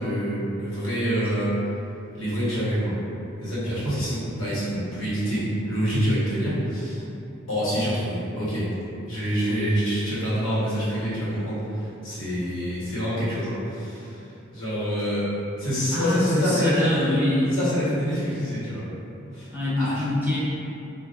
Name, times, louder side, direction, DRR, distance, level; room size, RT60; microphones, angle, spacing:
voice 1, 0.0-1.5 2.1-2.9 3.4-7.0 7.5-8.7 9.1-14.2 14.5-15.3 15.6-17.2 17.5-18.8 19.3-19.5 19.8-20.0, equal, 80° left, -10 dB, 1.2 m, -26 dB
voice 2, 15.9-17.5 19.5-20.4, left 1 dB, 10° right, -11 dB, 0.7 m, -25 dB
3.8 x 2.4 x 2.5 m, 2.7 s
head